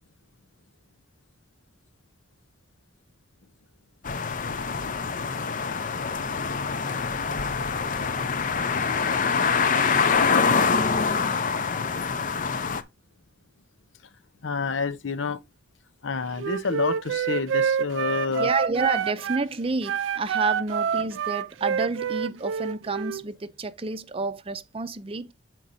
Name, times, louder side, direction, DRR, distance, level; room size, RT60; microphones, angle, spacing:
sound 1, 4.0-12.8, left 5 dB, 45° left, 0.6 m, -25 dB
voice 1, 14.4-15.4 16.0-18.5, left 4 dB, 85° left, 0.7 m, -28 dB
Wind instrument woodwind instrument, 16.4-19.5 19.8-23.2, right 7 dB, 85° right, 0.4 m, -27 dB
voice 2, 18.4-25.3, right 3 dB, 30° right, 0.5 m, -29 dB
7.6 x 4.5 x 4.0 m
head